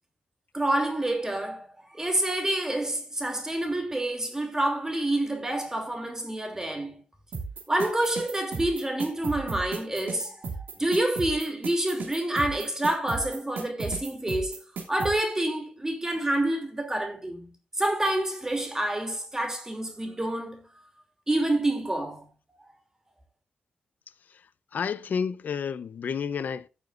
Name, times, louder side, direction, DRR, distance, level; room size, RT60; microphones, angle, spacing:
voice 1, 0.5-1.7 1.9-7.0 7.7-10.5 10.8-14.6 14.9-20.6 21.3-22.3, right 1 dB, 15° right, 2.8 m, -28 dB
sound 1, 7.3-15.1, right 4 dB, 85° right, 2.7 m, -34 dB
voice 2, 24.7-26.7, left 6 dB, 70° left, 0.7 m, -30 dB
15.5 x 7.0 x 2.6 m
cardioid pair, 80°, 3 cm